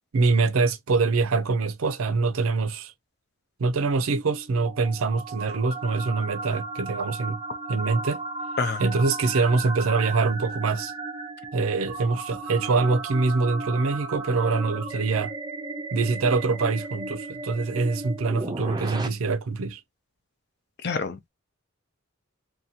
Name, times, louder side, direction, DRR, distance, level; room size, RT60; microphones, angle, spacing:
voice 1, 0.1-2.9 3.6-7.4 7.7-8.2 8.8-10.9 11.5-15.3 15.9-19.8, right 4 dB, 85° right, 0.5 m, -24 dB
sound 1, 4.0-19.1, right 3 dB, 20° right, 0.5 m, -35 dB
voice 2, 8.6-8.9 20.8-21.3, left 4 dB, 50° left, 0.6 m, -28 dB
2.7 x 2.3 x 2.7 m
head